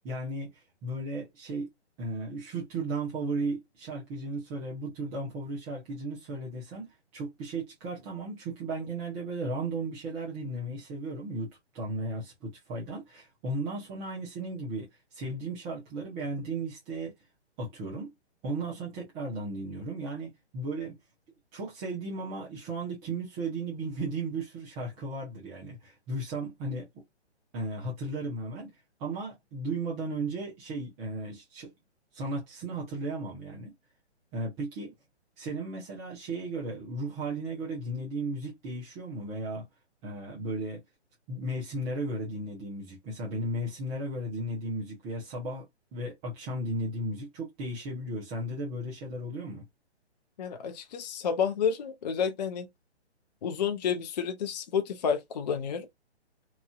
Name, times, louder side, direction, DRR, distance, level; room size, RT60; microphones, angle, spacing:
voice 1, 0.0-1.7 2.0-17.1 17.6-18.1 18.4-21.0 21.5-27.0 27.5-28.7 29.0-31.7 32.1-33.7 34.3-34.9 35.4-39.6 40.0-40.8 41.3-45.7 45.9-49.6, right 2 dB, 15° right, 0.7 m, -35 dB
voice 2, 50.4-52.7 53.4-55.9, left 7 dB, 40° left, 0.4 m, -30 dB
3.0 x 2.5 x 2.3 m
hypercardioid pair, 140°, 34 cm